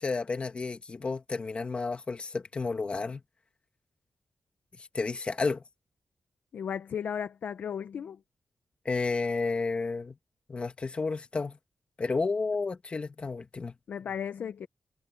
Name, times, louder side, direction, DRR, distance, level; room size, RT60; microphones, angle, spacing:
voice 1, 0.0-3.2 4.8-5.6 8.9-10.2 10.5-11.6 12.0-13.8, left 4 dB, 40° left, 2.1 m, -31 dB
voice 2, 6.5-8.2 13.9-14.7, left 8 dB, 80° left, 0.7 m, -35 dB
wide cardioid pair, 95°, 3 cm